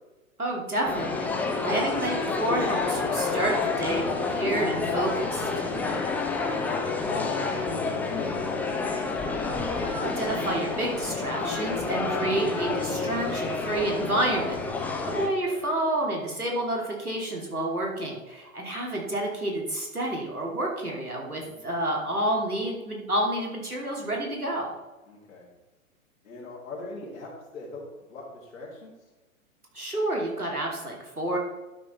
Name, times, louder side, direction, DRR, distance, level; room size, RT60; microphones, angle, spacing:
voice 1, 0.4-5.5 9.8-24.7 29.7-31.4, right 1 dB, 90° right, -1 dB, 2.9 m, -29 dB
sound 1, 0.8-15.3, left 4 dB, 5° left, 0.6 m, -29 dB
voice 2, 6.9-9.0 15.4-15.7 21.4-21.6 25.1-25.5 26.2-27.8 28.1-28.9, left 2 dB, 65° left, -6 dB, 3.3 m, -41 dB
12.0 x 6.2 x 4.4 m, 1.1 s
figure-of-eight pair, 110°, 43 cm